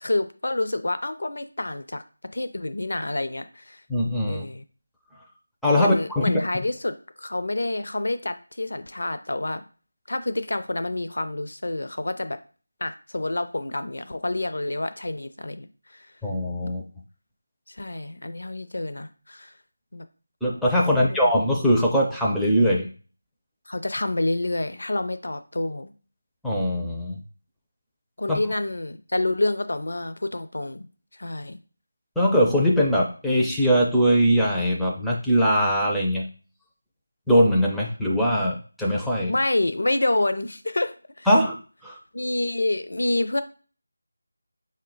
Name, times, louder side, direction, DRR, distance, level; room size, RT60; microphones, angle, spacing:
voice 1, 0.0-2.0 2.3-3.8 4.3-4.6 5.8-9.6 10.1-12.4 12.8-16.1 17.7-19.5 19.9-20.0 21.0-21.3 23.7-25.9 28.2-30.9 31.1-31.6 39.3-41.3 42.1-43.4, left 2 dB, 65° left, 11 dB, 0.5 m, -28 dB
voice 2, 3.9-4.4 5.6-6.4 16.2-16.8 20.4-22.9 26.4-27.2 28.3-28.4 32.2-36.3 37.3-39.3 41.3-41.6 41.8-42.0, equal, ahead, -5 dB, 0.4 m, -21 dB
5.4 x 2.2 x 3.8 m, 0.38 s
figure-of-eight pair, 165°, 0 cm